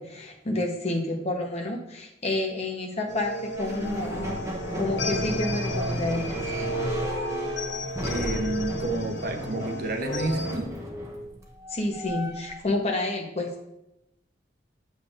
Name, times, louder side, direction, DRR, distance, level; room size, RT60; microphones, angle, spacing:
voice 1, 0.0-4.3 4.7-6.4 10.4-10.6 11.7-13.5, left 2 dB, 35° left, 0.9 m, -29 dB
sound 1, 3.1-10.6, equal, 65° left, 0.7 m, -33 dB
sound 2, 3.6-12.6, equal, 15° right, 0.8 m, -33 dB
voice 2, 8.0-10.8, right 2 dB, 50° right, 0.8 m, -30 dB
8.0 x 5.6 x 2.5 m
head